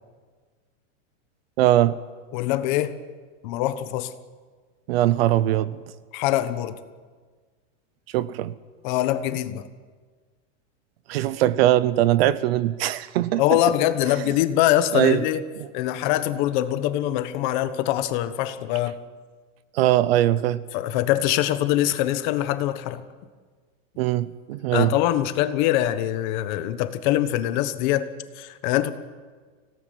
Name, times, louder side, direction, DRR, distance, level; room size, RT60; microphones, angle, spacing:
voice 1, 1.6-2.0 4.9-5.8 8.1-8.5 11.1-13.4 14.9-15.2 19.7-20.6 24.0-25.0, right 13 dB, 50° right, 0.8 m, -21 dB
voice 2, 2.3-2.9 3.4-4.1 6.1-6.8 8.8-9.7 13.4-15.4 15.7-18.9 20.7-23.0 24.7-28.1 28.3-28.9, left 13 dB, 35° left, 1.2 m, -23 dB
25.5 x 17.5 x 9.4 m
supercardioid pair, 180°, 39 cm